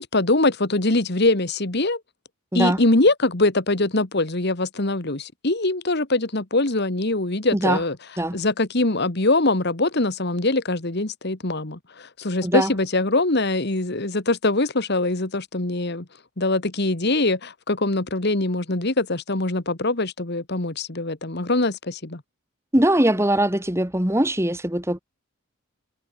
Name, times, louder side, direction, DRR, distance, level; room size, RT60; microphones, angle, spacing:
voice 1, 0.0-2.0 2.5-8.0 8.3-16.0 16.4-22.2, left 2 dB, 50° left, 1.7 m, -23 dB
voice 2, 22.7-25.0, right 1 dB, 10° right, 1.9 m, -21 dB
head